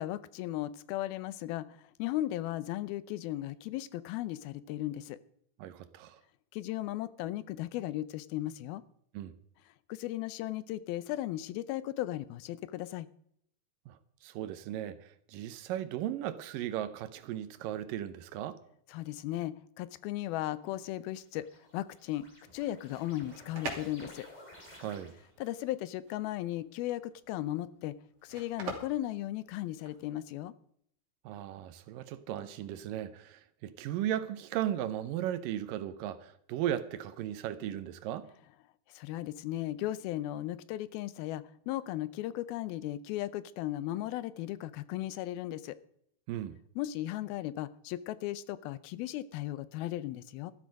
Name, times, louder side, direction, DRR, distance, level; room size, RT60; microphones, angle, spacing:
voice 1, 0.0-5.2 6.5-8.8 9.9-13.1 18.9-21.5 21.7-22.3 22.5-24.3 25.4-28.0 28.2-30.5 38.9-45.8 46.8-50.5, left 14 dB, 85° left, 2.6 m, -36 dB
voice 2, 5.6-6.2 9.1-9.3 13.9-18.6 24.8-25.1 31.3-38.3 46.3-46.6, right 11 dB, 75° right, 2.3 m, -36 dB
sound 1, 20.5-25.5, left 1 dB, 15° left, 2.5 m, -55 dB
sound 2, 23.2-30.1, right 3 dB, 45° right, 3.5 m, -44 dB
13.5 x 12.0 x 5.2 m
omnidirectional pair, 4.2 m